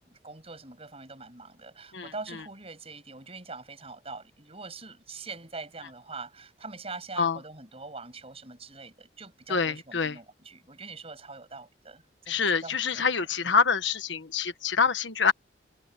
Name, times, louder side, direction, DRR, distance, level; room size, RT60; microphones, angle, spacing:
voice 1, 0.1-12.4 12.6-13.1, right 3 dB, 35° right, 7.3 m, -43 dB
voice 2, 9.5-10.2 12.3-15.3, left 5 dB, 75° left, 1.4 m, -26 dB
head